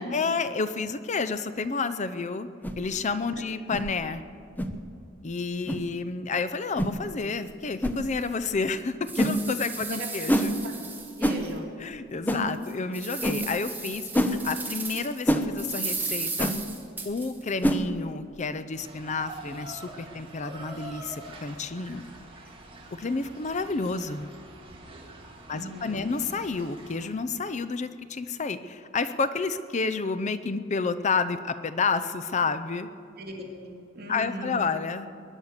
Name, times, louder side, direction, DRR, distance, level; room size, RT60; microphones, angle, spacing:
voice 1, 0.1-2.5 2.8-4.2 5.2-10.5 11.8-16.5 17.0-22.0 22.9-24.3 25.5-32.9 34.1-35.1, left 4 dB, 35° left, 13 dB, 0.5 m, -30 dB
sound 1, 2.6-2.8 3.7-3.9 4.6-4.7 5.7-5.8 6.8-6.9 7.8-8.0 9.2-9.4 10.3-10.5 11.2-11.4 12.3-12.4 13.2-13.4 14.1-14.3 15.3-15.5 16.4-16.6 17.6-17.8, equal, 10° left, 0.8 m, -25 dB
sound 2, 7.4-7.5 8.0-8.1 8.7-11.5 11.9-12.0 12.5-15.2 15.6-17.5, right 4 dB, 10° right, 1.9 m, -35 dB
voice 2, 11.2-11.7 12.3-12.4 25.5-26.1 33.2-34.7, right 1 dB, 50° right, -1 dB, 2.9 m, -38 dB
sound 3, 18.8-27.1, right 2 dB, 25° right, 1.9 m, -45 dB
22.0 x 9.8 x 6.6 m, 2.6 s
head